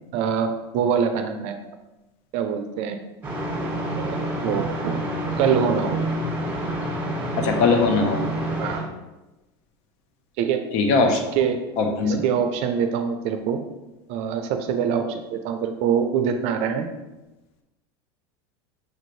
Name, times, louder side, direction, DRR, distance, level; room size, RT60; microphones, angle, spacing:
voice 1, 0.1-1.6 2.3-3.0 4.0-4.9 5.4-6.0 8.6-8.9 10.4-10.6 11.4-11.6 12.0-13.6 14.1-16.9, right 7 dB, 55° right, 7 dB, 0.4 m, -24 dB
sound 1, 3.2-8.8, right 1 dB, 15° right, 1.5 m, -28 dB
voice 2, 7.4-8.2 10.7-11.2 11.8-12.2, left 4 dB, 55° left, 4 dB, 0.7 m, -20 dB
6.3 x 2.6 x 3.1 m, 1.0 s
supercardioid pair, 115°, 14 cm